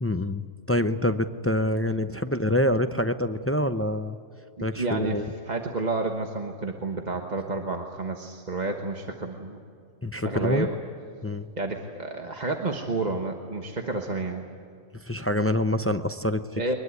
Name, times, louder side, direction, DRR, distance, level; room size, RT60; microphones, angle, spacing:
voice 1, 0.0-4.2 4.6-5.3 10.0-10.7 11.2-11.5 15.0-16.7, left 1 dB, 20° left, 9 dB, 0.4 m, -26 dB
voice 2, 4.6-9.6 10.2-10.7 11.6-14.4 16.6-16.7, right 3 dB, 35° right, 3 dB, 1.4 m, -30 dB
23.5 x 20.5 x 9.6 m, 2.3 s
omnidirectional pair, 1.3 m